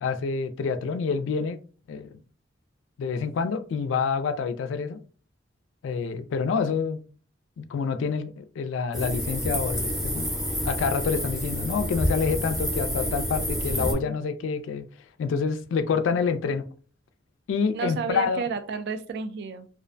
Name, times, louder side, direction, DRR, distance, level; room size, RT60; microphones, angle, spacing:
voice 1, 0.0-1.6 1.9-2.2 3.0-5.0 5.8-7.0 7.6-9.9 10.1-10.3 10.7-14.8 15.2-16.6 17.5-18.4, left 5 dB, 85° left, 0.3 m, -27 dB
sound 1, 8.9-13.9, equal, ahead, 0.6 m, -28 dB
voice 2, 13.8-14.2 17.7-19.7, right 5 dB, 60° right, 0.3 m, -32 dB
2.4 x 2.1 x 2.5 m
head